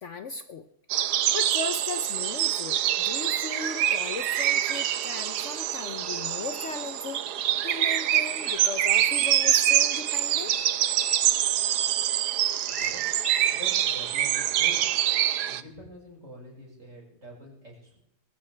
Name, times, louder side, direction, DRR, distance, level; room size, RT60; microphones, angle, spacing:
voice 1, 0.0-0.7 1.3-7.2 7.6-10.5, left 5 dB, 55° left, 9 dB, 0.9 m, -37 dB
sound 1, 0.9-15.6, right 11 dB, 85° right, 1.3 m, -25 dB
sound 2, 4.4-5.3 6.0-6.8 8.4-9.2 10.5-11.2 12.7-13.6, left 1 dB, 15° left, 6.4 m, -42 dB
voice 2, 12.7-13.1 13.5-14.8 15.5-18.0, equal, 50° right, -2 dB, 6.0 m, -45 dB
20.5 x 14.5 x 3.3 m, 0.77 s
omnidirectional pair, 1.7 m